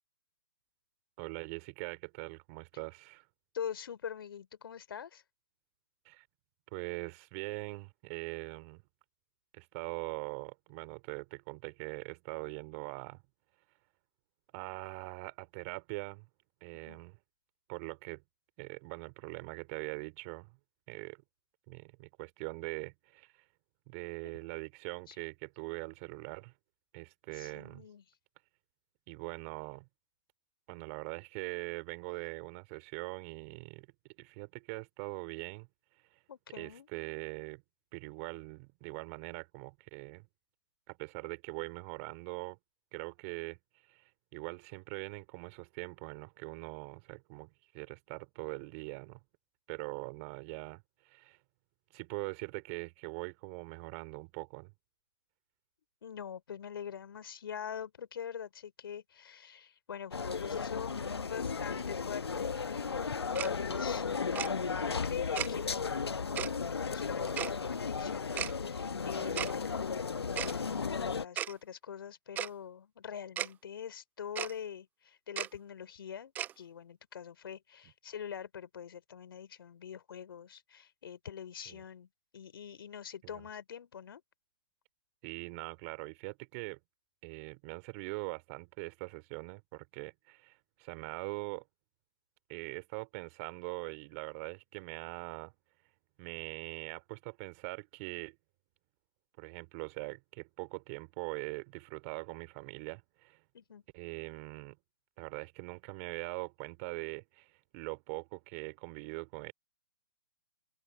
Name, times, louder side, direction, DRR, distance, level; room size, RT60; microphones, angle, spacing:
voice 1, 1.2-3.2 6.0-6.2 6.7-8.8 9.5-13.2 14.5-16.3 16.6-17.2 17.7-18.2 18.6-20.5 20.9-21.2 21.7-23.3 23.9-26.5 26.9-27.8 29.1-29.9 30.7-33.9 34.2-35.7 36.5-37.6 37.9-40.3 40.9-42.6 42.9-43.6 43.9-49.2 49.7-51.4 51.9-54.7 69.2-69.4 77.8-77.9 81.6-81.8 83.2-83.5 85.2-86.8 87.2-91.6 92.5-95.5 96.2-98.4 99.4-103.4 103.9-104.8 105.2-109.5, right 32 dB, 35° right, 3.1 m, -42 dB
voice 2, 3.5-5.2 16.9-17.0 25.1-25.2 27.3-28.0 36.3-36.9 56.0-63.2 63.5-82.1 82.3-84.2 103.5-103.8, left 8 dB, 65° left, 3.5 m, -44 dB
sound 1, 60.1-71.2, left 5 dB, 80° left, 1.2 m, -35 dB
Tick-tock, 63.4-63.5 64.4-64.5 65.4-65.5 66.4-66.5 67.4-67.5 68.4-68.5 69.4-69.5 70.4-70.5 71.4-71.5 72.4-72.5 73.4-73.5 74.4-74.5 75.4-75.5 76.4-76.5, right 10 dB, 15° right, 0.4 m, -35 dB
open air
figure-of-eight pair, 125°, 13 cm